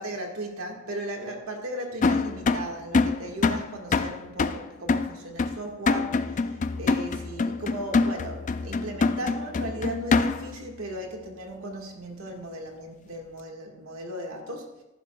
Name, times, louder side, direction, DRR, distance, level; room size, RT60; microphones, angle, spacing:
voice 1, 0.0-14.7, right 1 dB, 90° right, 2 dB, 1.7 m, -36 dB
sound 1, 2.0-10.6, left 4 dB, 35° left, 0.4 m, -25 dB
14.0 x 11.0 x 2.3 m, 1.0 s
head